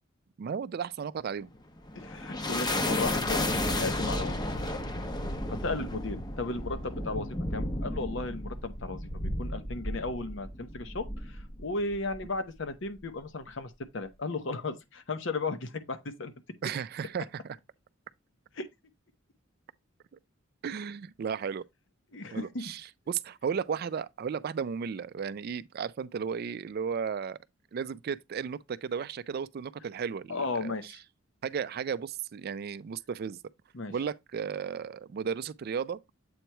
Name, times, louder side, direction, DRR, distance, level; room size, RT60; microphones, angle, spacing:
voice 1, 0.4-1.5 5.7-5.9 16.6-17.6 20.6-21.6 22.3-27.4 27.7-31.0 31.4-33.4 33.9-36.0, right 6 dB, 50° right, 0.3 m, -34 dB
sound 1, 1.5-12.3, left 1 dB, 20° left, 0.7 m, -33 dB
voice 2, 2.0-4.5 5.5-16.3 18.6-18.7 22.1-22.7 30.3-31.0 33.7-33.9, left 3 dB, 65° left, 0.8 m, -35 dB
7.9 x 3.0 x 4.5 m
head